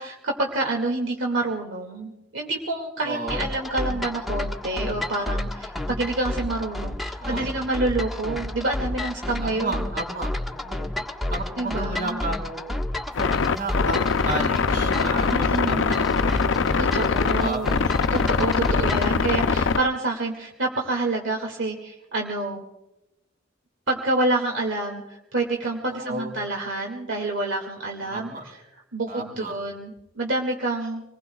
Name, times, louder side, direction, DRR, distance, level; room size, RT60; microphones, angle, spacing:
voice 1, 0.0-9.8 11.6-12.2 15.3-16.0 16.8-17.8 18.1-22.6 23.9-28.6 28.9-31.0, right 2 dB, 75° right, 1 dB, 2.2 m, -28 dB
voice 2, 3.0-3.4 7.2-7.5 9.4-10.9 11.3-12.8 13.4-17.6 25.9-26.3 28.0-28.4 29.1-29.5, right 2 dB, 50° right, 2 dB, 4.9 m, -33 dB
sound 1, 3.3-19.1, left 1 dB, ahead, 1.4 m, -31 dB
sound 2, 13.1-19.8, left 5 dB, 70° left, 0.5 m, -23 dB
28.0 x 20.0 x 2.3 m, 0.94 s
head